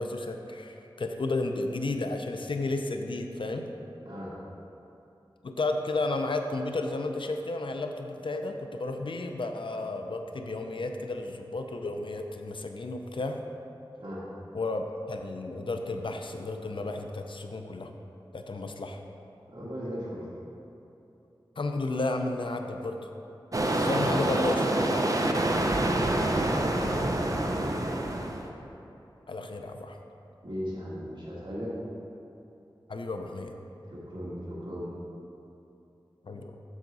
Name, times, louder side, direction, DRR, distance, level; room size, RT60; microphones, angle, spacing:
voice 1, 0.0-3.7 5.4-13.4 14.5-17.9 18.3-19.0 21.6-23.1 23.8-25.4 29.3-30.0 32.9-33.5 36.2-36.5, left 2 dB, 70° left, 5 dB, 0.5 m, -33 dB
voice 2, 19.5-20.2 26.2-27.7 30.4-31.7 33.9-34.9, equal, 65° right, -8 dB, 1.9 m, -38 dB
sound 1, 23.5-28.5, right 1 dB, 40° right, 0.7 m, -26 dB
7.3 x 7.2 x 4.0 m, 2.8 s
wide cardioid pair, 60°, 9 cm